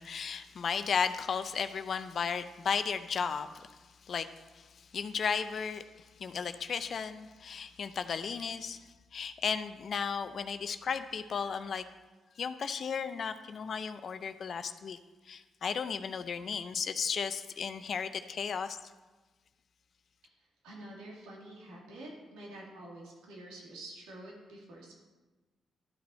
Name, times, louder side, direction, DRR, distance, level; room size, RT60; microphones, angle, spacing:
voice 1, 0.0-3.7 4.1-4.3 4.6-4.7 4.9-5.8 6.2-8.8 9.1-11.8 12.4-15.0 15.3-18.8, left 6 dB, 60° left, 10 dB, 0.5 m, -34 dB
voice 2, 20.4-25.0, right 1 dB, 90° right, -3 dB, 2.3 m, -48 dB
12.5 x 6.0 x 4.2 m, 1.2 s
supercardioid pair, 55°, 0 cm